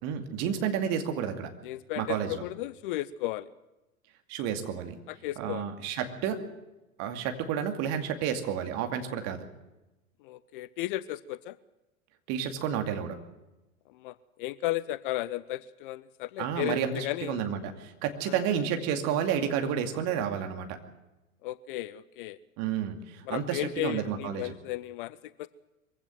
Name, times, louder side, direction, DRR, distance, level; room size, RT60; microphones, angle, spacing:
voice 1, 0.0-1.5 2.0-2.4 4.3-4.9 5.4-6.5 7.0-9.5 12.3-13.2 16.4-20.8 22.6-24.5, right 8 dB, 40° right, 5 dB, 2.5 m, -31 dB
voice 2, 1.6-3.5 5.1-5.6 10.2-11.6 14.0-17.4 18.3-18.4 21.4-22.4 23.3-25.5, left 15 dB, 40° left, 18 dB, 0.6 m, -34 dB
22.5 x 16.0 x 7.9 m, 1.0 s
figure-of-eight pair, 90°, 41 cm